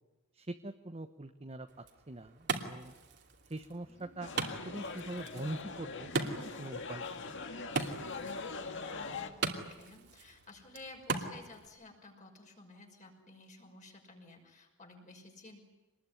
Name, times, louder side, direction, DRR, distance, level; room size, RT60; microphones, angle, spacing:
voice 1, 0.3-1.7 2.1-2.9 3.5-7.0 7.3-7.4, right 2 dB, 30° right, 7 dB, 1.1 m, -43 dB
Wood, 1.7-11.7, right 4 dB, 55° right, 2.7 m, -40 dB
sound 1, 4.2-9.3, left 4 dB, 60° left, 2.2 m, -42 dB
voice 2, 8.9-15.6, left 2 dB, 35° left, 2 dB, 5.9 m, -54 dB
26.0 x 20.5 x 10.0 m, 1.2 s
head